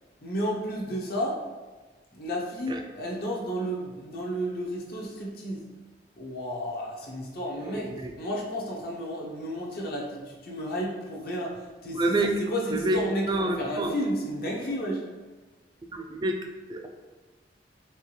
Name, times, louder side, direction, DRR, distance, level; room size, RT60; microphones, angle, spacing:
voice 1, 0.2-1.4 2.1-5.6 6.2-15.0, equal, 60° left, -2 dB, 0.9 m, -32 dB
voice 2, 7.7-8.1 11.9-12.3 12.7-13.0 13.3-13.9 15.9-16.4 16.7-16.9, right 2 dB, 25° right, 3 dB, 0.3 m, -27 dB
4.5 x 3.4 x 3.2 m, 1.3 s
head